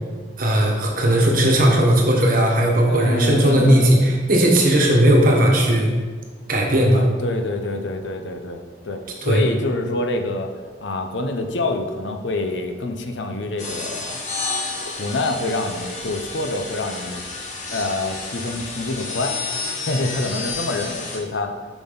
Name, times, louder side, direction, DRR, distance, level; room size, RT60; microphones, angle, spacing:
voice 1, 0.4-5.9 6.5-7.0 9.2-9.4, right 1 dB, 50° right, 0 dB, 1.2 m, -17 dB
voice 2, 2.9-4.0 6.9-10.5 10.8-14.2 14.9-17.2 17.7-19.3 19.8-21.5, left 2 dB, 70° left, 5 dB, 0.7 m, -26 dB
sound 1, 13.6-21.2, left 3 dB, 40° left, 1.1 m, -31 dB
6.9 x 6.1 x 3.9 m, 1.5 s
head